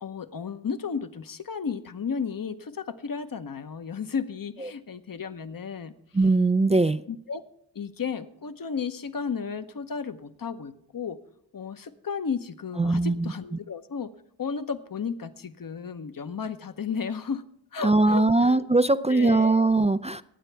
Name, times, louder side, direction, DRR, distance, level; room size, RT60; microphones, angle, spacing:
voice 1, 0.0-5.9 7.1-7.4 7.7-11.2 11.5-14.1 14.4-17.4 17.7-18.7 19.1-19.5, left 6 dB, 45° left, 11 dB, 1.0 m, -33 dB
voice 2, 6.1-7.0 12.8-13.3 17.8-20.2, right 2 dB, 15° right, 11 dB, 0.4 m, -21 dB
20.5 x 8.9 x 3.4 m, 0.76 s
cardioid pair, 50°, 47 cm